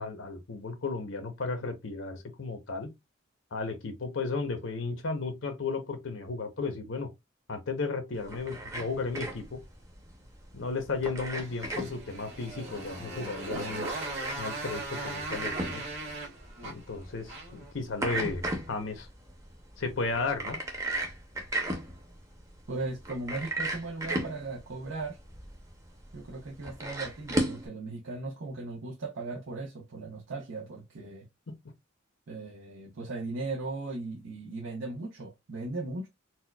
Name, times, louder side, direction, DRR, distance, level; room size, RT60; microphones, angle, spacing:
voice 1, 0.0-2.9 3.5-7.1 7.5-9.6 10.5-13.9 14.4-15.8 16.6-19.1 19.8-20.6, left 4 dB, 70° left, 0.8 m, -34 dB
sound 1, 8.2-27.7, right 1 dB, 15° right, 0.7 m, -37 dB
Motorcycle, 11.4-17.7, right 2 dB, 60° right, 1.4 m, -38 dB
voice 2, 22.7-25.2 26.1-31.3 32.3-36.1, right 3 dB, 80° right, 0.6 m, -37 dB
4.2 x 2.2 x 2.2 m
head